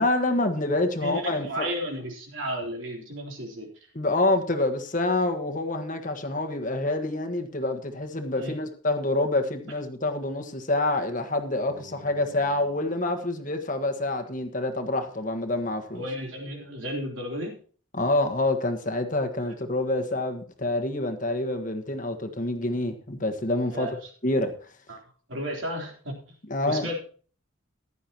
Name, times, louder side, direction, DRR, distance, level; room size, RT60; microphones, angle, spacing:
voice 1, 0.0-1.7 3.9-16.0 17.9-23.9 24.2-24.5 26.5-26.9, left 2 dB, 40° left, 1.5 m, -27 dB
voice 2, 1.0-3.7 8.3-8.5 15.9-17.5 23.7-23.9 24.9-25.0 25.3-26.4 26.7-27.0, equal, 70° right, 3.8 m, -33 dB
Bass guitar, 11.7-15.8, right 1 dB, 30° right, 4.0 m, -53 dB
15.5 x 11.0 x 3.0 m
head